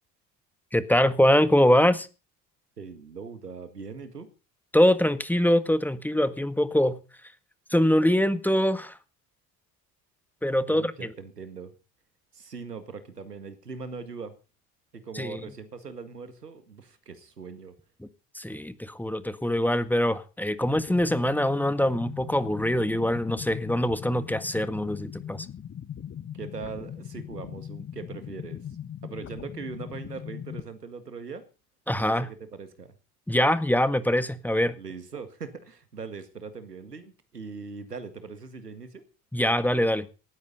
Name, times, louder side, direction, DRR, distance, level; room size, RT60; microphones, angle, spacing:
voice 1, 0.7-2.1 4.7-7.0 7.7-9.0 10.4-11.1 15.1-15.4 18.3-25.5 31.9-32.3 33.3-34.8 39.3-40.0, left 1 dB, 5° left, 12 dB, 1.7 m, -23 dB
voice 2, 2.8-4.3 10.7-11.7 12.3-14.3 14.9-17.7 26.3-28.6 29.0-31.4 32.0-32.9 34.8-39.0, right 5 dB, 85° right, 10 dB, 2.0 m, -40 dB
sound 1, 20.6-30.6, left 9 dB, 30° left, 1.2 m, -40 dB
18.5 x 13.5 x 4.0 m, 0.34 s
figure-of-eight pair, 55°, 46 cm